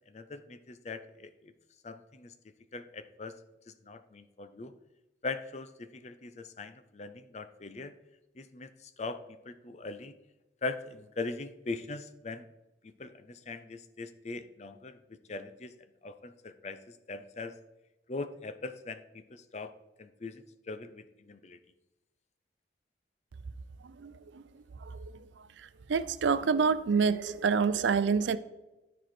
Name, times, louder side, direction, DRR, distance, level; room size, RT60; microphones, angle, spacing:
voice 1, 0.1-1.5 1.8-2.3 2.7-3.3 3.7-4.7 5.2-7.9 8.4-10.1 10.6-12.5 13.0-15.0 15.3-15.7 16.0-17.5 18.1-19.7 20.0-21.6, left 3 dB, 35° left, 0.5 m, -41 dB
voice 2, 24.0-24.4 24.9-25.0 25.9-28.4, right 5 dB, 80° right, 0.4 m, -27 dB
12.5 x 4.5 x 4.4 m
head